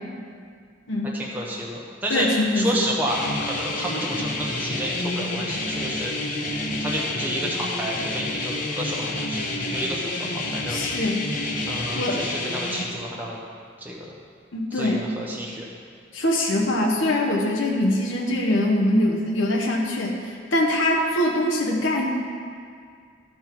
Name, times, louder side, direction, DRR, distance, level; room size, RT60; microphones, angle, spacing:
voice 1, 1.1-2.3 2.5-6.1 6.8-10.8 11.6-13.4 13.8-14.1 14.7-15.7, equal, 10° right, -4 dB, 0.9 m, -30 dB
voice 2, 2.1-2.8 10.7-11.2 12.0-12.2 14.5-15.1 16.1-22.1, left 1 dB, 85° left, -2 dB, 1.1 m, -23 dB
sound 1, 3.1-12.8, left 2 dB, 45° left, 0.9 m, -29 dB
13.5 x 5.4 x 4.6 m, 2.1 s
head